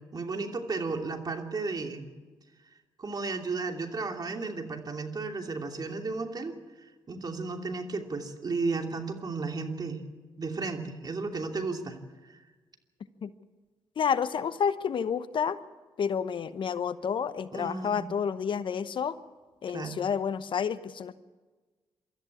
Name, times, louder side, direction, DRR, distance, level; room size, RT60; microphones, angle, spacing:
voice 1, 0.1-2.1 3.0-6.5 6.8-10.0 10.4-12.0 12.3-12.4 17.5-18.0 19.7-20.0, right 3 dB, 45° right, 4 dB, 2.9 m, -34 dB
voice 2, 14.0-15.6 16.0-19.2 19.6-21.1, left 7 dB, 60° left, 14 dB, 0.9 m, -30 dB
24.0 x 13.5 x 8.5 m, 1.3 s
supercardioid pair, 50°, 10 cm